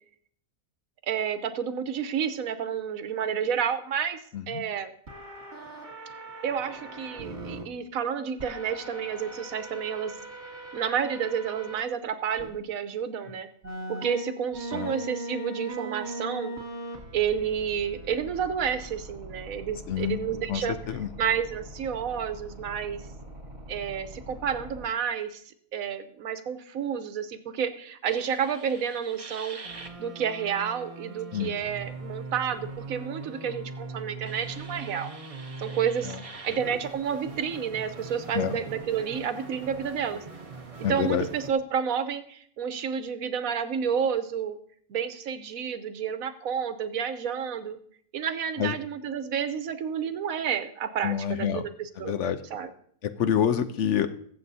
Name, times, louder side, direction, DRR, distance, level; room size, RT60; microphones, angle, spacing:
voice 1, 1.1-4.2 4.5-4.9 6.4-10.2 10.7-13.5 13.9-16.5 17.1-20.8 21.2-23.0 23.7-25.4 25.7-29.6 30.0-35.1 35.6-36.1 36.4-40.2 40.8-44.6 44.9-47.8 48.1-52.2 52.5-52.7, right 7 dB, 80° right, 10 dB, 1.2 m, -30 dB
voice 2, 4.3-4.6 14.7-14.9 19.9-20.2 20.5-21.1 31.3-31.5 36.0-36.2 38.3-38.6 40.8-41.2 48.6-48.7 51.0-51.6 52.0-52.4 53.0-54.1, left 9 dB, 65° left, 10 dB, 0.9 m, -27 dB
sound 1, 5.1-7.6 8.4-11.8 12.4-12.5 13.6-24.9, right 1 dB, 50° right, 2.5 m, -40 dB
sound 2, 28.0-41.5, right 4 dB, 30° right, 0.9 m, -41 dB
22.0 x 7.6 x 2.7 m, 0.62 s
omnidirectional pair, 1.5 m